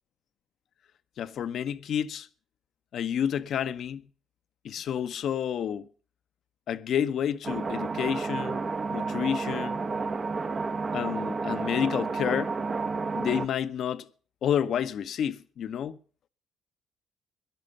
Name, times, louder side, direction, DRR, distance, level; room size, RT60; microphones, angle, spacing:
voice 1, 1.2-2.3 2.9-4.0 4.6-5.9 6.7-8.6 8.9-9.8 10.9-12.5 13.1-14.1 14.4-16.0, left 9 dB, 65° left, 0.8 m, -29 dB
sound 1, 7.4-13.5, right 4 dB, 40° right, 1.0 m, -31 dB
13.5 x 11.0 x 6.6 m
supercardioid pair, 60°, 0 cm